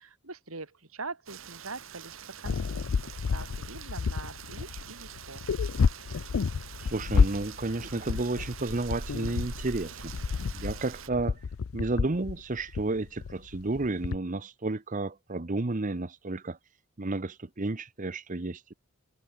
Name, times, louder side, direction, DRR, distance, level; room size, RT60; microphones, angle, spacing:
voice 1, 0.0-2.8 3.3-5.4, right 3 dB, 90° right, 3.9 m, -43 dB
Rain, 1.3-11.1, right 6 dB, 65° right, 1.7 m, -45 dB
sound 1, 2.4-14.2, left 5 dB, 75° left, 0.5 m, -30 dB
voice 2, 6.8-10.1 10.5-11.4 11.7-16.6 17.0-18.7, right 2 dB, 40° right, 0.9 m, -32 dB
head